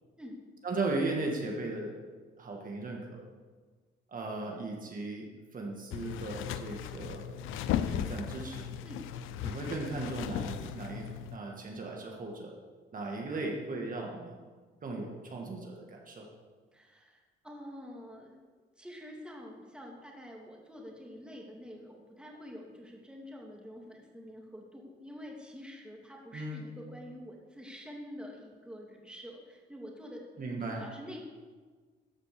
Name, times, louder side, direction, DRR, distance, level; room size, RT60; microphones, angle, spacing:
voice 1, 0.6-2.0 2.4-3.2 4.1-7.3 7.8-8.6 9.4-12.5 12.9-14.4 14.8-16.3 26.3-26.6 30.4-30.9, right 2 dB, 45° right, 0 dB, 1.9 m, -37 dB
sound 1, 5.9-11.4, left 10 dB, 90° left, 0.5 m, -36 dB
voice 2, 16.7-18.4 18.8-30.2 30.7-31.2, equal, 5° right, -1 dB, 2.4 m, -47 dB
13.5 x 5.2 x 6.8 m, 1.4 s
cardioid pair, 90°, 20 cm